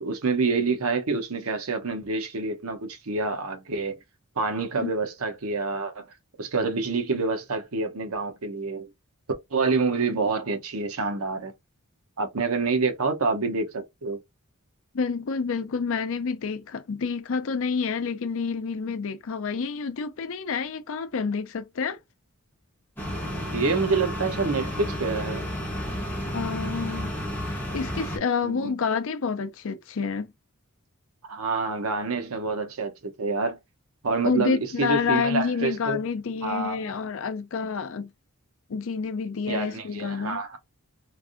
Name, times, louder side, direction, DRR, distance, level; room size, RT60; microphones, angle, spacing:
voice 1, 0.0-4.0 4.4-6.1 6.4-8.9 9.5-11.5 12.2-14.2 23.5-25.5 28.4-28.7 31.2-33.6 34.0-36.0 36.4-36.9 39.5-40.6, right 4 dB, 75° right, 0.8 m, -27 dB
voice 2, 14.9-22.0 26.3-27.1 27.5-30.3 34.2-38.1 38.7-40.4, left 5 dB, 65° left, 0.5 m, -28 dB
sound 1, 23.0-28.2, equal, 10° left, 1.0 m, -31 dB
3.2 x 2.6 x 2.5 m
head